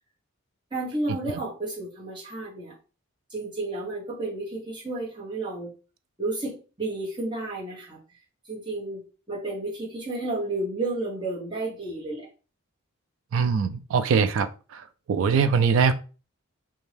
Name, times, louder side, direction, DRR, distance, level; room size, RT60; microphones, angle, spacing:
voice 1, 0.7-2.8 3.3-5.7 6.2-8.0 8.4-12.3, right 2 dB, 20° right, 1.0 m, -32 dB
voice 2, 13.3-14.8 15.1-15.9, right 5 dB, 65° right, 0.3 m, -22 dB
2.6 x 2.2 x 3.2 m
head